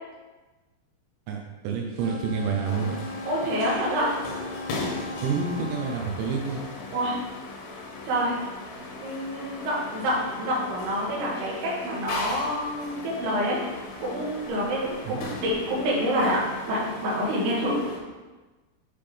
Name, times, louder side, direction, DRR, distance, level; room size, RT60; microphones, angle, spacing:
voice 1, 1.3-3.0 5.2-6.6 15.0-15.2, right 5 dB, 90° right, 0 dB, 3.1 m, -28 dB
sound 1, 1.9-6.0, left 2 dB, 50° right, 2.6 m, -38 dB
sound 2, 2.7-18.0, left 3 dB, 70° left, 2.6 m, -38 dB
voice 2, 3.3-4.1 6.9-7.2 8.0-8.4 9.0-13.6 14.0-16.4 16.7-17.8, equal, 70° right, -5 dB, 3.4 m, -27 dB
7.9 x 5.1 x 3.4 m, 1.2 s
omnidirectional pair, 5.0 m